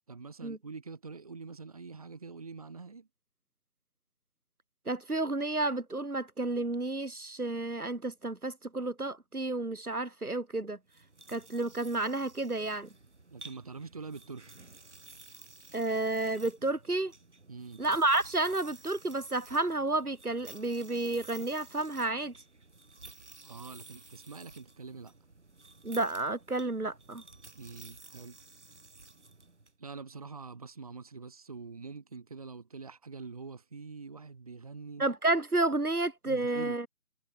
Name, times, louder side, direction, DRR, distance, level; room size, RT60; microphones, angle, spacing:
voice 1, 0.1-3.1 13.3-14.5 17.5-17.8 23.4-25.1 27.5-28.4 29.8-35.1 36.3-36.8, right 4 dB, 25° right, 3.3 m, -45 dB
voice 2, 4.9-10.8 11.3-12.9 15.7-17.1 17.8-22.3 25.8-27.2 35.0-36.9, right 2 dB, 70° right, 4.6 m, -31 dB
sound 1, 10.9-29.7, right 3 dB, 50° right, 6.8 m, -53 dB
figure-of-eight pair, 170°, 45 cm